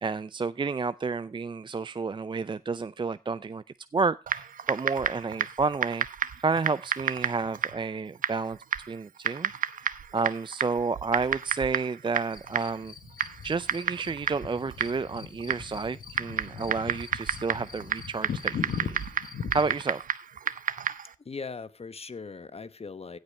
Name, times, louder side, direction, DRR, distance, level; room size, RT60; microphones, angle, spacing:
voice 1, 0.0-3.6 3.9-6.1 6.4-9.5 10.1-12.9 13.4-19.0 19.5-20.0, right 4 dB, 35° right, 0.5 m, -30 dB
Typing, 4.3-21.1, right 8 dB, 70° right, 0.8 m, -32 dB
sound 1, 12.3-19.8, left 7 dB, 75° left, 1.2 m, -39 dB
voice 2, 21.2-23.2, left 4 dB, 45° left, 1.1 m, -39 dB
16.0 x 5.3 x 5.4 m
supercardioid pair, 40°, 15 cm